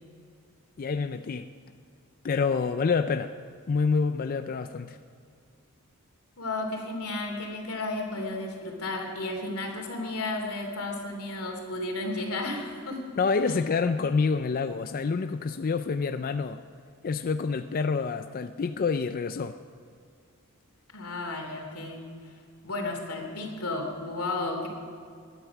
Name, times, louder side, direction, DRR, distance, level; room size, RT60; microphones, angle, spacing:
voice 1, 0.8-1.5 2.2-3.3 3.7-5.0 13.2-16.6 17.0-19.6, left 5 dB, 40° left, 9 dB, 0.4 m, -27 dB
voice 2, 6.4-13.0 13.5-13.6 20.9-22.0 22.6-24.7, left 2 dB, 90° left, 2 dB, 2.9 m, -33 dB
20.0 x 11.0 x 5.9 m, 2.3 s
head